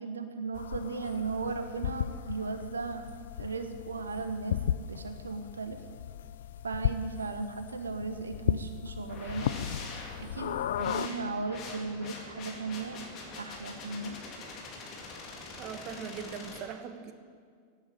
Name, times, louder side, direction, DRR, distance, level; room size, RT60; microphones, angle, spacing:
voice 1, 0.0-3.0 3.4-5.8 6.6-9.5 10.2-13.0 13.3-14.2, right 4 dB, 75° right, 8 dB, 0.9 m, -36 dB
sound 1, 0.5-11.1, left 10 dB, 60° left, 0.4 m, -36 dB
sound 2, 9.1-16.6, left 3 dB, 35° left, 3.7 m, -44 dB
voice 2, 15.6-17.1, right 7 dB, 40° right, 9 dB, 1.3 m, -40 dB
15.0 x 10.0 x 9.0 m, 2.1 s
figure-of-eight pair, 90°, 0 cm